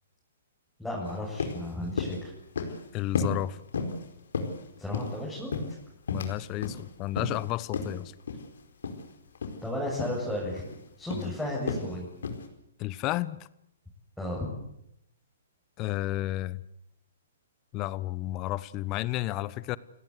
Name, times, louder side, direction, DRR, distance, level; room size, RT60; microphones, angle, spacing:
voice 1, 0.8-2.3 4.8-5.5 9.6-10.6 11.0-12.1 14.2-14.5, left 1 dB, ahead, -5 dB, 7.6 m, -33 dB
sound 1, 1.0-1.1 1.4-1.6 2.0-2.2 2.6-2.8 3.1-3.4 3.7-4.0 4.3-5.2 5.5-6.3 6.6-6.8 7.2-7.4 7.7-7.9 8.3-8.5 8.8-9.0 9.3-9.6 10.0-10.2 10.5-10.8 11.1-11.3 11.7-11.9 12.2-12.4, left 4 dB, 75° left, 4.7 m, -32 dB
voice 2, 2.9-3.6 6.1-8.1 11.1-11.3 12.8-13.4 15.8-16.6 17.7-19.8, left 16 dB, 30° left, 19 dB, 1.1 m, -32 dB
29.5 x 17.5 x 8.3 m, 0.79 s
hypercardioid pair, 130°, 0 cm